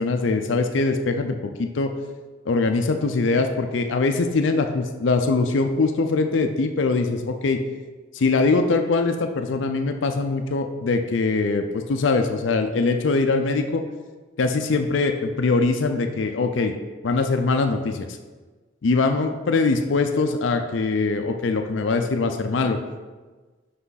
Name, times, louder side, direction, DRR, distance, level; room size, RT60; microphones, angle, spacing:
voice 1, 0.0-1.9 2.5-7.6 8.1-13.8 14.4-16.7 17.0-18.1 18.8-22.8, left 3 dB, 70° left, 6 dB, 0.5 m, -22 dB
5.8 x 5.6 x 4.0 m, 1.3 s
head